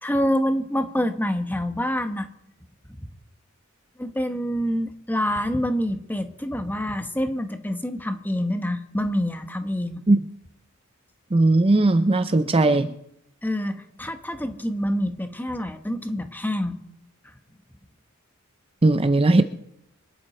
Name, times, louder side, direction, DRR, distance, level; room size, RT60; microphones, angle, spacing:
voice 1, 0.0-2.3 4.0-10.0 13.4-16.8, equal, 10° left, 7 dB, 1.2 m, -26 dB
voice 2, 11.3-13.0 18.8-19.4, right 2 dB, 25° right, 10 dB, 0.6 m, -18 dB
25.0 x 10.5 x 4.4 m, 0.77 s
head